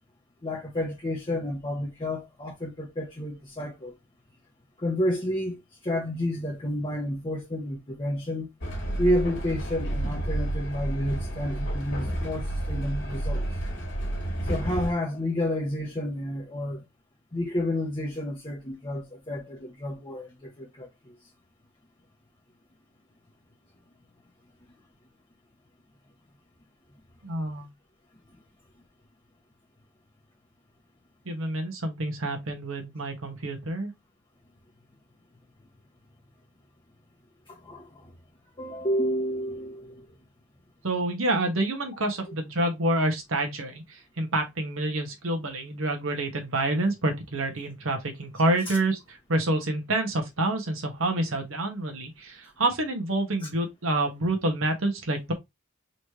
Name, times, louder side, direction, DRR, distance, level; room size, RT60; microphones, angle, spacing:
voice 1, 0.4-3.9 4.8-8.5 9.0-13.4 14.4-16.8 17.3-21.1 37.5-38.1 38.6-40.1 41.9-42.1 48.7-48.8 53.4-53.5, left 1 dB, 25° left, 0.8 m, -30 dB
Train, 8.6-14.9, right 1 dB, 60° left, 1.8 m, -30 dB
voice 2, 27.2-27.7 31.2-33.9 40.8-55.3, right 2 dB, 80° right, 1.3 m, -28 dB
4.1 x 3.2 x 2.9 m
head